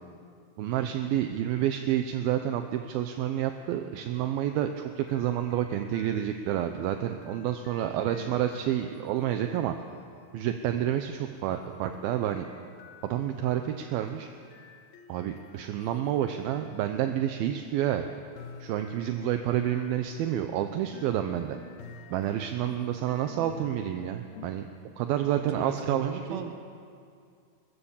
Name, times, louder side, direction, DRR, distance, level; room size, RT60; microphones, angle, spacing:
voice 1, 0.6-9.8 10.3-12.4 13.0-14.3 15.1-18.0 18.6-21.6 22.1-24.7 25.0-26.4, right 11 dB, 80° right, 6 dB, 2.6 m, -29 dB
sound 1, 5.0-10.2 11.5-17.3 18.4-24.5, left 6 dB, 75° left, 3.1 m, -51 dB
voice 2, 7.8-8.4 25.2-26.5, right 6 dB, 65° right, 5 dB, 3.0 m, -39 dB
22.0 x 20.0 x 7.2 m, 2.3 s
omnidirectional pair, 4.4 m